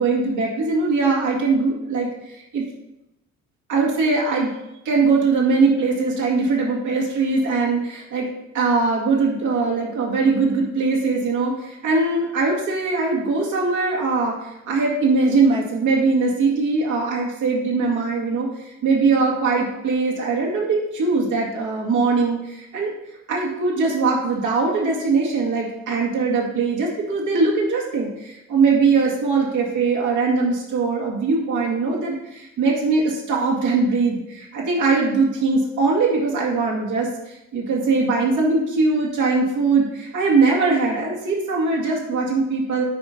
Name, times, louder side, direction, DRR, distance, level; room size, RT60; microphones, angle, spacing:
voice 1, 0.0-2.1 2.5-2.7 3.7-4.5 4.8-8.3 8.5-22.9 23.3-42.8, right 4 dB, 85° right, -3 dB, 2.3 m, -21 dB
9.3 x 4.5 x 5.2 m, 0.89 s
cardioid pair, 90°, 30 cm